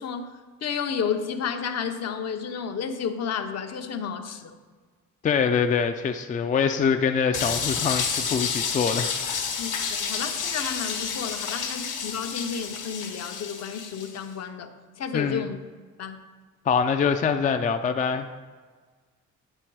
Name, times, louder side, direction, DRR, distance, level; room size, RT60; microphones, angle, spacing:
voice 1, 0.0-4.5 9.6-15.6 16.0-16.2, left 6 dB, 55° left, 6 dB, 0.7 m, -32 dB
voice 2, 5.2-9.6 15.1-15.4 16.7-18.3, left 6 dB, 25° left, 7 dB, 0.4 m, -24 dB
sound 1, 7.3-14.2, left 6 dB, 90° left, 1.2 m, -30 dB
9.0 x 3.8 x 4.6 m, 1.5 s
cardioid pair, 90°, 30 cm